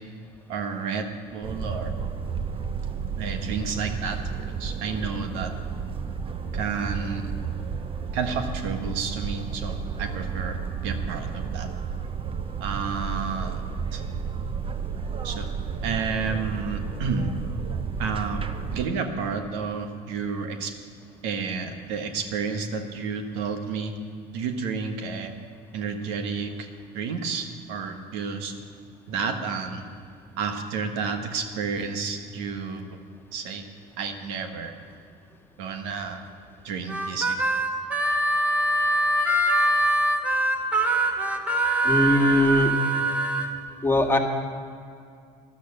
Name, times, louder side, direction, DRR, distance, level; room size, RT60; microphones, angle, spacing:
voice 1, 0.5-1.9 3.2-4.2 4.6-5.5 6.5-7.3 8.1-11.7 12.6-13.6 13.9-14.0 15.2-15.5 15.8-17.3 18.0-18.4 18.7-20.7 21.2-23.9 24.3-25.3 25.7-26.7 26.9-28.5 29.1-29.8 30.4-33.0 33.3-33.7 34.0-34.7 35.6-36.2 36.6-37.4, right 5 dB, 85° right, 6 dB, 1.5 m, -30 dB
sound 1, 1.4-18.9, right 6 dB, 30° right, 0.7 m, -32 dB
Harmonica, 36.9-43.5, right 1 dB, 5° right, 1.4 m, -23 dB
voice 2, 41.8-42.7 43.8-44.2, left 1 dB, 10° left, 2 dB, 1.7 m, -20 dB
13.5 x 11.5 x 7.2 m, 2.4 s
supercardioid pair, 100°, 19 cm